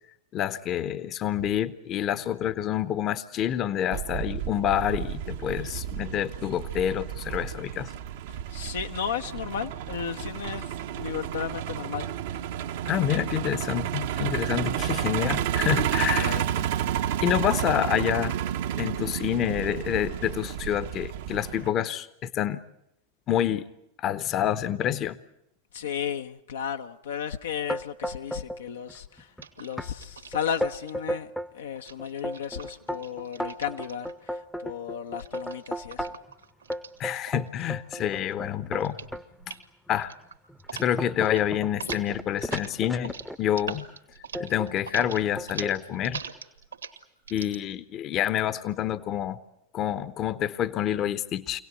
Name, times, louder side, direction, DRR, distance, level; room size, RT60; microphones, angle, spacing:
voice 1, 0.3-7.9 12.9-16.4 17.2-18.4 18.8-22.6 23.3-23.7 24.0-25.2 37.0-39.0 39.5-39.6 39.9-40.1 40.7-43.8 44.4-46.2 47.3-49.4 49.7-51.6, left 10 dB, 35° left, 15 dB, 1.0 m, -28 dB
Truck, 3.9-21.7, right 10 dB, 55° right, 1.0 m, -31 dB
voice 2, 8.5-12.1 16.1-16.7 25.7-29.3 29.6-36.1, left 8 dB, 65° left, 6 dB, 0.9 m, -34 dB
sound 1, 27.7-28.6 28.9-29.4 29.8-29.9 30.3-31.5 32.0-36.3 36.7-39.2 39.9-40.0 40.5-43.6 44.3-44.7 45.0-45.8, equal, ahead, 0.9 m, -34 dB
sound 2, 29.4-30.9 31.7-34.3 35.2-37.7 38.0-38.4 38.8-39.1 39.4-39.7 40.0-40.9 41.1-41.4 41.7-47.6, right 6 dB, 75° right, 2.0 m, -41 dB
25.0 x 18.0 x 9.7 m, 0.81 s
figure-of-eight pair, 90°, 0 cm